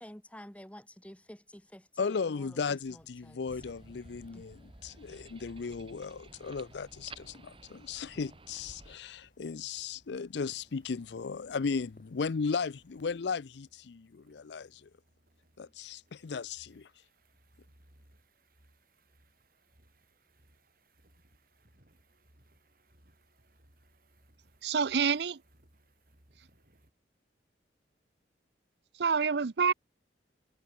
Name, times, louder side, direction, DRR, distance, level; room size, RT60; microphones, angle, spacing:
voice 1, 0.0-3.4 4.3-4.4, equal, 5° left, 2.9 m, -50 dB
voice 2, 2.0-14.9 15.6-16.9, left 5 dB, 70° left, 0.5 m, -36 dB
sound 1, 2.8-13.3, left 1 dB, 45° left, 5.1 m, -65 dB
sound 2, 3.5-9.0, right 2 dB, 30° right, 1.9 m, -53 dB
sound 3, 10.3-26.9, right 1 dB, 50° right, 6.0 m, -66 dB
voice 3, 24.6-25.4 29.0-29.7, right 6 dB, 65° right, 0.6 m, -27 dB
head